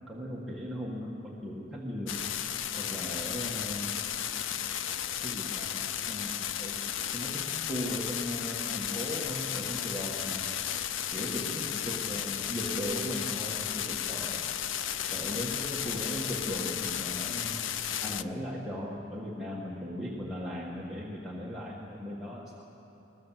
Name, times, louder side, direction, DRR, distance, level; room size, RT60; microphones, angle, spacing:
voice 1, 0.1-2.4 2.8-3.9 5.2-6.8 7.1-10.5 11.1-14.5 15.1-17.6 18.0-22.6, equal, ahead, -6 dB, 1.7 m, -37 dB
sound 1, 2.1-18.2, left 10 dB, 85° left, 0.6 m, -34 dB
21.0 x 21.0 x 7.6 m, 3.0 s
head